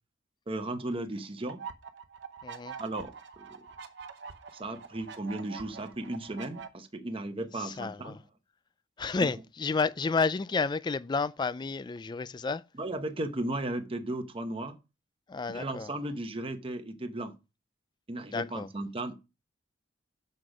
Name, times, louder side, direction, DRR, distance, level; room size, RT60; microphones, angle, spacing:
voice 1, 0.5-1.6 2.8-3.1 3.4-3.6 4.5-8.2 9.2-9.3 12.8-14.8 15.5-17.3 18.1-19.1, right 1 dB, 30° right, 0.9 m, -35 dB
sound 1, 1.5-6.7, right 6 dB, 65° right, 0.9 m, -45 dB
voice 2, 2.4-2.7 7.6-8.2 9.0-12.6 15.3-15.9 18.3-18.7, left 4 dB, 25° left, 0.3 m, -31 dB
6.6 x 6.1 x 4.8 m
head